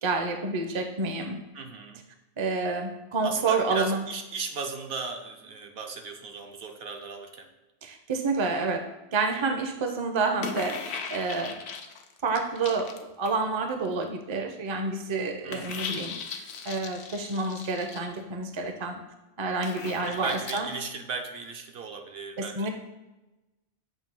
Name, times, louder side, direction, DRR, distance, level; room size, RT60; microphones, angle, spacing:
voice 1, 0.0-1.4 2.4-4.0 7.8-11.6 12.2-19.0 19.4-20.7 22.4-22.7, right 3 dB, 35° right, 5 dB, 0.5 m, -29 dB
voice 2, 1.5-2.0 3.2-7.5 15.4-16.0 20.0-22.7, right 4 dB, 70° right, 4 dB, 0.9 m, -36 dB
sound 1, 10.4-13.5 13.9-14.0 15.5-18.0 19.6-20.6, left 6 dB, 80° left, 0.9 m, -38 dB
7.7 x 2.6 x 5.3 m, 1.0 s
omnidirectional pair, 1.1 m